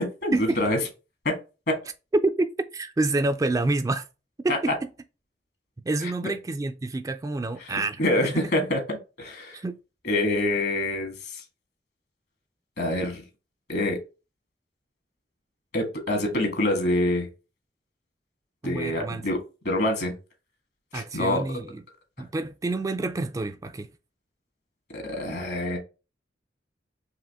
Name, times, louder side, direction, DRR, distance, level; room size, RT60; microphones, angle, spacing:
voice 1, 0.2-0.8 1.2-1.3 1.7-1.8 4.5-4.6 6.0-6.1 7.6-8.8 9.2-9.6 10.0-11.4 12.8-13.2 13.7-14.0 15.7-17.3 18.6-19.4 19.6-20.1 20.9-21.4 24.9-25.8, left 1 dB, 65° left, 1.6 m, -26 dB
voice 2, 2.2-4.0 4.4-4.7 5.9-8.4 9.5-9.8 18.6-19.2 20.9-21.8 22.2-23.9, right 2 dB, 20° right, 0.3 m, -28 dB
4.9 x 3.0 x 3.5 m
head